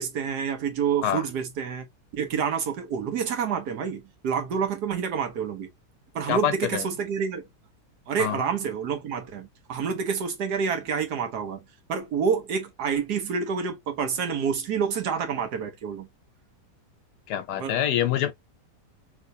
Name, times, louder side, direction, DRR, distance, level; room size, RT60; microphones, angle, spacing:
voice 1, 0.0-1.9 2.1-5.7 6.1-7.4 8.1-11.6 11.9-16.1 17.6-17.8, right 6 dB, 70° right, 1.4 m, -28 dB
voice 2, 6.3-6.9 8.2-8.4 17.3-18.3, left 10 dB, 75° left, 1.1 m, -26 dB
3.2 x 3.1 x 2.5 m
omnidirectional pair, 1.9 m